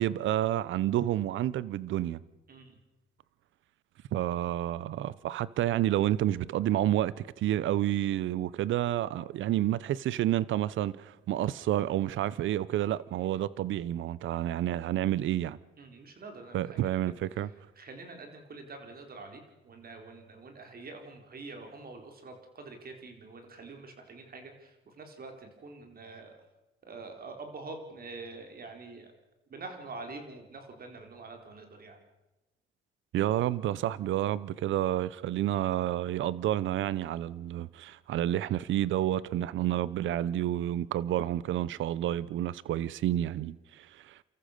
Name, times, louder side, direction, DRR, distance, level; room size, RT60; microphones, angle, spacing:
voice 1, 0.0-2.2 4.1-15.6 16.5-17.5 33.1-44.2, right 12 dB, 75° right, 0.7 m, -29 dB
voice 2, 15.8-17.2 17.8-26.3 26.8-29.1 29.5-32.0, right 3 dB, 50° right, 4.4 m, -46 dB
29.5 x 14.0 x 6.7 m
cardioid pair, 90°, 20 cm